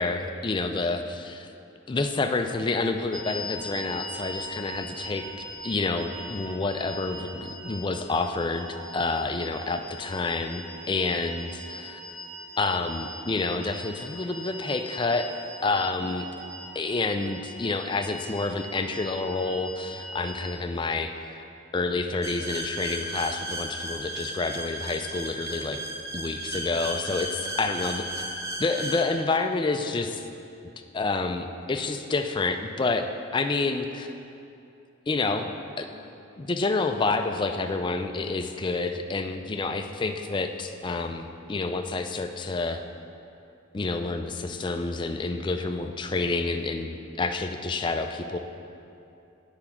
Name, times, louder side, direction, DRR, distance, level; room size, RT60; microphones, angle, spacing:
voice 1, 0.0-1.5 1.9-5.3 5.6-12.0 12.6-15.3 15.6-16.3 16.8-21.5 21.7-25.8 26.1-28.0 28.6-30.2 30.9-34.1 35.1-35.5 35.8-36.1 36.4-42.8 43.7-48.4, left 3 dB, 25° left, 6 dB, 0.3 m, -28 dB
sound 1, 3.1-20.6, right 1 dB, 35° right, 1.1 m, -41 dB
sound 2, 22.2-29.0, right 1 dB, 15° right, 0.7 m, -34 dB
8.9 x 4.8 x 5.8 m, 2.7 s
head